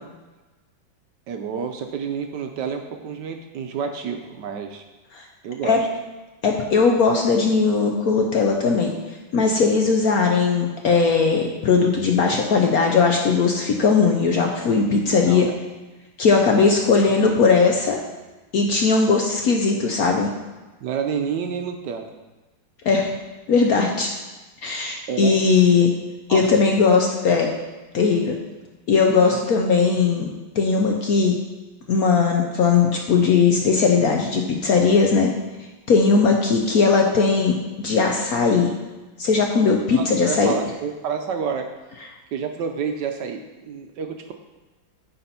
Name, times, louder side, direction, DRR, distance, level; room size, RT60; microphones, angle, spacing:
voice 1, 1.3-4.8 5.4-5.9 15.1-15.6 20.8-22.2 25.1-25.3 26.3-26.5 29.3-29.4 39.9-41.7 42.3-44.3, right 6 dB, 70° right, 5 dB, 1.1 m, -29 dB
voice 2, 6.4-8.9 9.3-15.5 16.2-18.0 18.5-20.3 22.8-23.1 23.5-24.1 24.6-25.9 26.3-27.5 27.9-28.4 28.9-30.3 30.6-31.4 31.9-35.3 35.9-38.7 39.2-40.5, left 4 dB, 65° left, 1 dB, 1.0 m, -18 dB
9.3 x 4.3 x 5.6 m, 1.2 s
omnidirectional pair, 2.2 m